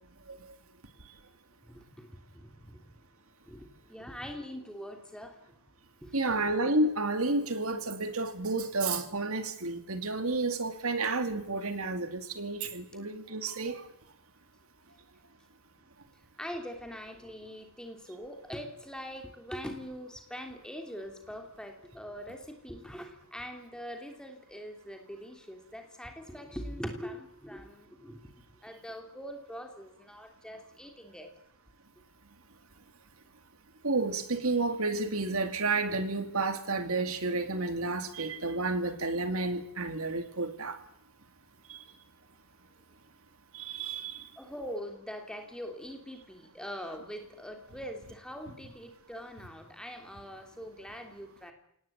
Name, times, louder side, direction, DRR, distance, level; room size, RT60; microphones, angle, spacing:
voice 1, 1.6-2.9 3.5-5.6 6.0-6.3 16.4-28.3 28.6-31.3 44.4-51.5, equal, 5° left, 4 dB, 3.2 m, -43 dB
voice 2, 6.1-13.8 33.8-40.8 41.7-41.8 43.5-44.2, right 3 dB, 80° right, 8 dB, 2.5 m, -31 dB
27.5 x 18.5 x 8.8 m, 0.74 s
head